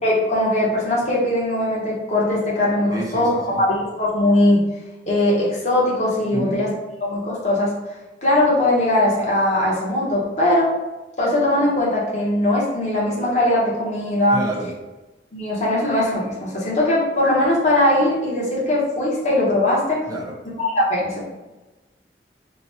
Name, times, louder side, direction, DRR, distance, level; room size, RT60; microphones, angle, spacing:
voice 1, 0.0-4.6 5.1-6.7 7.0-7.7 8.2-10.7 11.2-14.4 15.3-20.0 20.6-21.2, left 1 dB, 40° left, -5 dB, 0.9 m, -20 dB
voice 2, 2.9-3.6 6.3-6.6 14.3-14.7 20.1-20.4, right 1 dB, 20° right, -3 dB, 0.7 m, -29 dB
2.9 x 2.2 x 4.2 m, 1.1 s
head